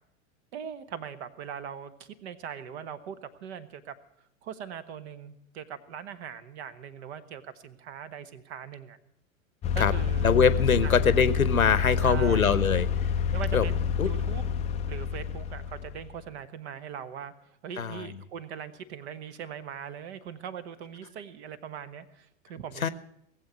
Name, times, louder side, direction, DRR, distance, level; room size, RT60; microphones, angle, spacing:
voice 1, 0.5-3.9 4.4-9.0 9.7-10.3 10.8-11.1 12.0-12.6 13.3-14.4 14.9-17.3 17.6-22.9, right 8 dB, 50° right, 13 dB, 1.3 m, -41 dB
sound 1, 9.6-16.2, left 7 dB, 15° left, 0.5 m, -28 dB
voice 2, 10.2-13.1 13.5-13.7 14.0-14.1 17.8-18.1 22.8-22.9, left 6 dB, 80° left, 15 dB, 1.0 m, -23 dB
18.5 x 7.8 x 9.2 m, 0.75 s
figure-of-eight pair, 90°, 41 cm